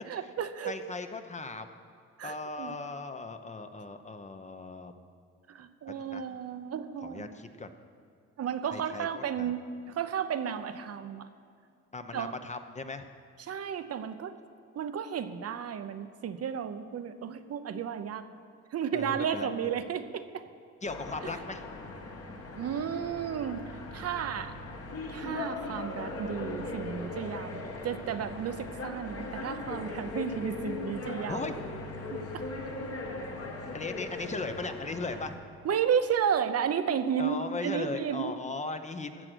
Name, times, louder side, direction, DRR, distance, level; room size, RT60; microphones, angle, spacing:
voice 1, 0.1-0.9 2.2-2.8 5.5-7.3 8.4-11.3 12.1-12.3 13.4-14.4 14.7-18.2 18.7-20.2 22.5-23.6 23.9-24.5 25.1-31.4 32.1-32.4 35.6-37.4 37.6-38.3, right 8 dB, 55° right, 10 dB, 0.7 m, -33 dB
voice 2, 0.7-1.7 2.2-4.9 5.9-6.2 7.0-7.7 8.7-9.5 11.9-13.0 18.9-19.7 20.8-21.6 31.3-31.5 33.7-35.3 37.2-39.3, left 3 dB, 25° left, 8 dB, 0.8 m, -38 dB
sound 1, 20.8-35.3, left 2 dB, 50° left, 1.7 m, -39 dB
14.0 x 7.8 x 6.2 m, 2.3 s
cardioid pair, 90°, 30 cm